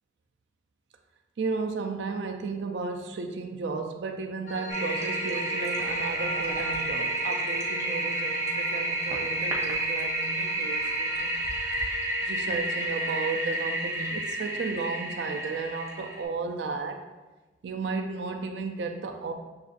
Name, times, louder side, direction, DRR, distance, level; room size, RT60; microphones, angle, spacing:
voice 1, 1.4-11.4 12.2-17.1 17.6-19.3, right 4 dB, 90° right, 5 dB, 0.4 m, -34 dB
sound 1, 4.5-13.4, right 1 dB, 45° left, 0.6 m, -40 dB
Toilet flush, 4.7-16.2, right 1 dB, 15° right, 0.6 m, -30 dB
6.4 x 2.5 x 2.3 m, 1.2 s
head